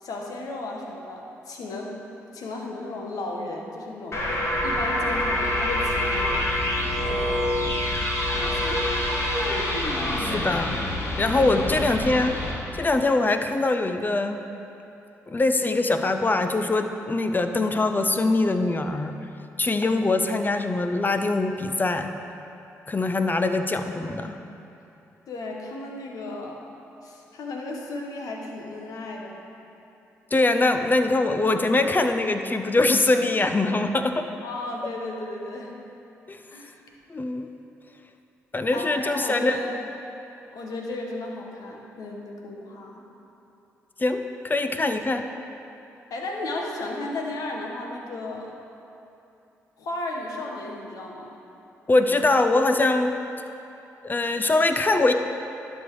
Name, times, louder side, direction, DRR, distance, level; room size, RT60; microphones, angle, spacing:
voice 1, 0.0-2.0 2.3-4.2 4.6-6.6 7.1-7.5 8.3-8.9 11.3-12.1 25.3-26.6 27.0-29.4 34.4-35.7 36.5-36.7 38.7-39.7 40.5-43.0 46.1-48.5 49.8-51.3, left 2 dB, 70° left, 0 dB, 1.3 m, -34 dB
sound 1, 4.1-12.5, left 1 dB, 45° left, 1.9 m, -26 dB
voice 2, 10.2-10.8 11.2-12.3 12.8-14.4 15.3-19.2 19.6-22.1 22.9-24.4 30.3-34.3 36.3-36.4 37.1-37.5 38.5-39.6 44.0-45.3 51.9-53.2 54.0-55.1, left 2 dB, 30° left, 7 dB, 0.6 m, -23 dB
11.0 x 5.5 x 4.8 m, 2.8 s
supercardioid pair, 50°, 6 cm